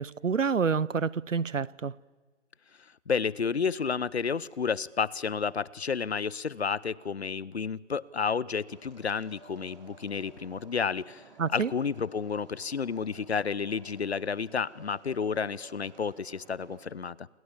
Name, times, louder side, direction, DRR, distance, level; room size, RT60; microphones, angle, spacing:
voice 1, 0.0-1.9 11.4-11.7, right 5 dB, 85° right, 0.8 m, -28 dB
voice 2, 3.1-11.2 11.5-17.3, left 6 dB, 60° left, 0.9 m, -31 dB
sound 1, 8.7-16.9, right 4 dB, 35° right, 5.5 m, -55 dB
28.0 x 26.0 x 7.3 m
figure-of-eight pair, 155°, 37 cm